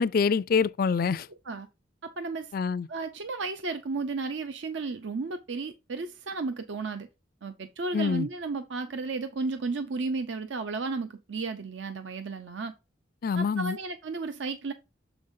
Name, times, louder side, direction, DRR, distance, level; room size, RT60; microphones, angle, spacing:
voice 1, 0.0-1.3 2.5-2.9 7.9-8.3 13.2-13.8, left 5 dB, 50° left, 0.3 m, -25 dB
voice 2, 1.3-1.7 2.0-2.5 2.9-7.1 7.4-12.7 13.3-14.7, right 3 dB, 75° right, 0.6 m, -33 dB
7.1 x 5.3 x 2.6 m
head